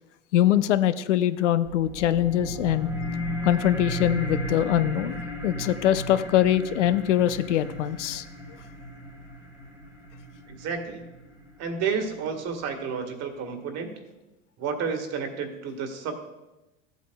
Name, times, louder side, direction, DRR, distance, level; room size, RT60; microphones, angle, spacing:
voice 1, 0.3-2.9 3.4-8.2, left 11 dB, 90° left, 13 dB, 0.6 m, -23 dB
sound 1, 1.6-12.6, equal, 5° right, 1.4 m, -35 dB
voice 2, 10.5-11.1 11.6-13.9 14.6-16.2, right 5 dB, 45° right, 5 dB, 1.6 m, -31 dB
14.0 x 8.2 x 2.2 m, 1.0 s
hypercardioid pair, 100°, 35 cm